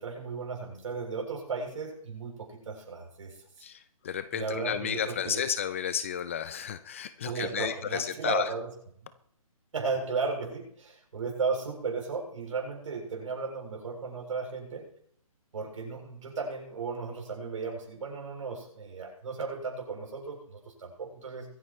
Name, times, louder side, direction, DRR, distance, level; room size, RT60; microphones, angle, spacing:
voice 1, 0.0-3.4 4.3-5.4 7.2-8.7 9.7-14.8 15.5-21.5, right 4 dB, 60° right, 1 dB, 7.5 m, -35 dB
voice 2, 3.6-8.5, left 8 dB, 20° left, 13 dB, 0.5 m, -32 dB
24.0 x 10.0 x 3.2 m, 0.67 s
hypercardioid pair, 165°, 19 cm